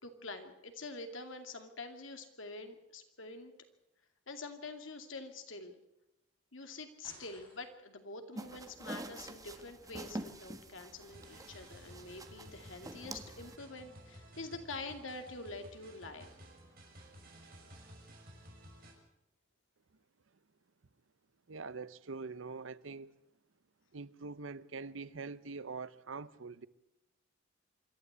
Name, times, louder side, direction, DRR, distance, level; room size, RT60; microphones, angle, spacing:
voice 1, 0.0-3.5 4.3-5.8 6.5-16.3, left 3 dB, 80° left, 2.5 m, -46 dB
sound 1, 7.0-8.0, left 2 dB, 25° left, 6.3 m, -57 dB
sound 2, 8.3-13.6, right 1 dB, 20° right, 1.4 m, -46 dB
sound 3, 11.1-18.9, right 1 dB, 50° right, 6.1 m, -55 dB
voice 2, 21.5-23.1 23.9-26.7, right 4 dB, 80° right, 0.8 m, -44 dB
26.0 x 12.5 x 8.2 m
head